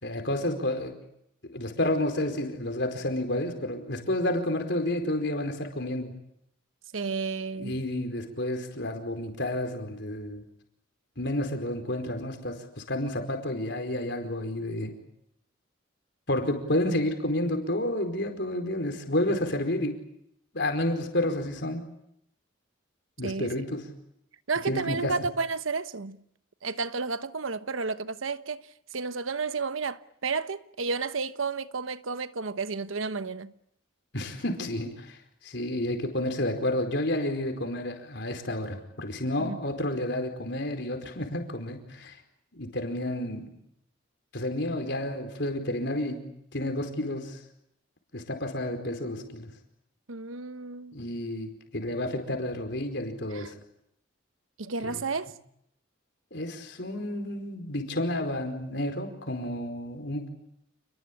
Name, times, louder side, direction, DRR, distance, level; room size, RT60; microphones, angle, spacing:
voice 1, 0.0-1.0 1.5-6.1 7.6-10.4 11.2-14.9 16.3-20.0 20.5-21.8 23.2-23.9 24.7-25.1 34.1-35.2 35.4-42.2 42.5-43.5 44.3-46.2 46.5-47.4 48.1-49.5 50.9-53.5 54.8-55.0 56.3-60.3, left 1 dB, 60° left, 4.7 m, -30 dB
voice 2, 6.9-7.8 23.2-23.5 24.5-26.2 26.6-28.6 28.9-33.5 39.4-39.6 50.1-51.0 53.3-53.5 54.6-55.3, right 4 dB, 90° right, 1.1 m, -32 dB
29.0 x 20.5 x 8.8 m
head